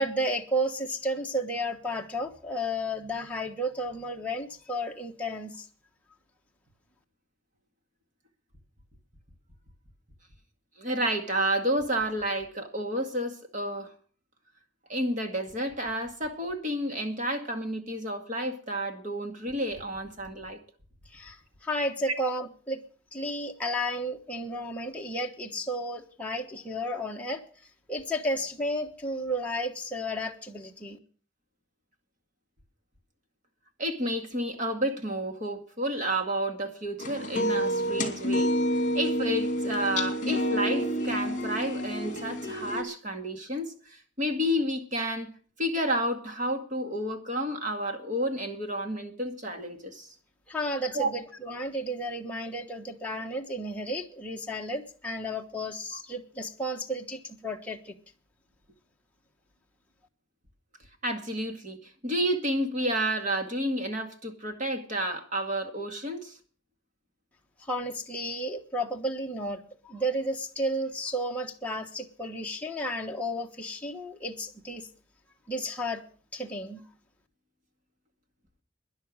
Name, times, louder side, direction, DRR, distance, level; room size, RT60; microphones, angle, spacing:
voice 1, 0.0-5.7 21.1-22.8 23.1-27.4 27.9-31.0 50.5-57.9 67.6-74.9 75.5-76.0 76.3-76.8, equal, 5° left, 1.3 m, -32 dB
voice 2, 10.8-13.9 14.9-20.6 22.1-22.2 33.8-38.5 38.9-45.3 45.6-50.1 50.9-51.1 61.0-66.4, right 1 dB, 35° right, 2.1 m, -30 dB
sound 1, 37.0-42.8, equal, 35° left, 2.3 m, -29 dB
12.5 x 10.5 x 6.4 m
head